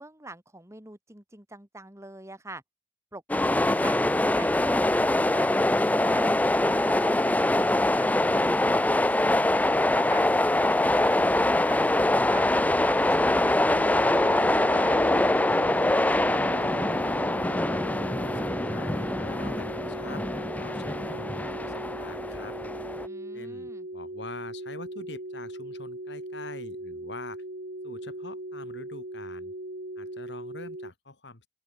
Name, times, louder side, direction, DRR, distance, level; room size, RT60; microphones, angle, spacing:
voice 1, 0.0-2.6 3.1-4.0 4.3-6.4 6.8-8.1 8.4-10.2 10.8-12.5 12.8-15.0 23.0-23.9, right 2 dB, 15° right, 2.6 m, -45 dB
sound 1, 3.3-23.1, left 1 dB, 10° left, 0.5 m, -24 dB
sound 2, 13.7-30.9, right 1 dB, 60° right, 2.9 m, -39 dB
voice 2, 16.2-22.6 23.3-27.4 27.8-29.5 30.0-31.5, left 3 dB, 75° left, 2.8 m, -45 dB
open air
head